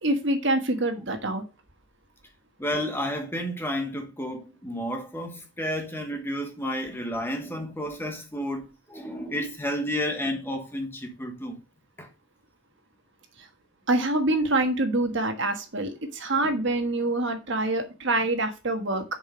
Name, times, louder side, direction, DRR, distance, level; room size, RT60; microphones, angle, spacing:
voice 1, 0.0-1.4 13.9-19.0, right 2 dB, 55° right, 1.5 m, -25 dB
voice 2, 2.6-11.6 12.0-12.1 16.4-16.5, equal, 10° left, 1.2 m, -31 dB
6.7 x 5.2 x 5.1 m
head